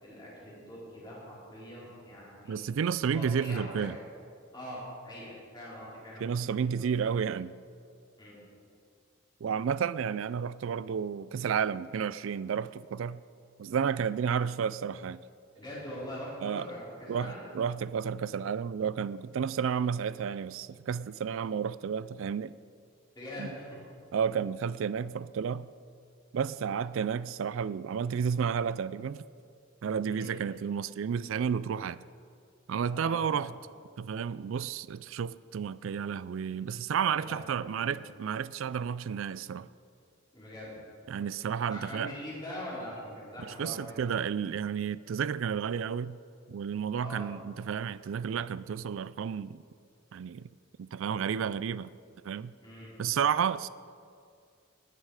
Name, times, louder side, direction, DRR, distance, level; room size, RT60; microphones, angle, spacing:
voice 1, 0.0-2.6 3.1-4.0 4.5-6.5 6.7-7.1 8.2-8.4 15.5-17.4 23.1-23.8 30.1-30.4 32.9-33.5 37.2-38.0 40.3-40.8 41.7-44.0 47.0-47.3 52.6-52.9, equal, 20° left, -7 dB, 4.4 m, -43 dB
voice 2, 2.5-4.0 6.2-7.5 9.4-13.2 13.6-15.2 16.4-16.7 17.1-22.5 23.4-23.5 24.1-25.7 26.3-29.3 29.8-32.0 32.7-33.5 34.0-39.7 41.1-42.1 43.4-46.2 46.5-49.6 50.1-50.5 50.8-51.9 52.2-52.5 53.0-53.7, right 7 dB, 65° right, 17 dB, 0.3 m, -31 dB
19.5 x 9.9 x 4.9 m, 2.3 s
head